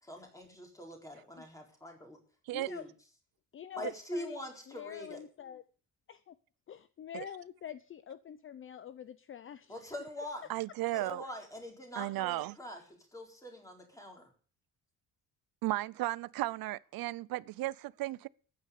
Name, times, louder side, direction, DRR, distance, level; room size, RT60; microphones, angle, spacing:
voice 1, 0.0-2.2 2.7-2.9 3.8-5.3 9.7-10.5 10.9-12.8 13.1-14.3, left 1 dB, 10° left, 4.2 m, -44 dB
voice 2, 2.5-2.9 3.5-5.6 6.1-6.3 6.7-9.8, left 9 dB, 35° left, 0.7 m, -46 dB
voice 3, 10.5-11.2 12.0-12.5 15.6-18.3, right 17 dB, 85° right, 0.6 m, -35 dB
14.0 x 9.6 x 6.7 m
cardioid pair, 170°, 34 cm